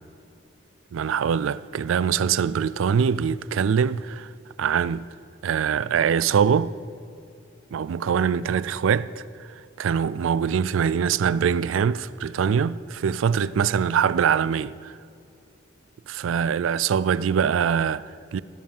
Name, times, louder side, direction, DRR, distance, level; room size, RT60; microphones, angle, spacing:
voice 1, 0.9-4.3 4.6-5.1 5.4-6.7 7.7-9.2 9.8-15.0 16.1-18.4, right 7 dB, 85° right, 0.3 m, -23 dB
17.5 x 7.6 x 5.5 m
head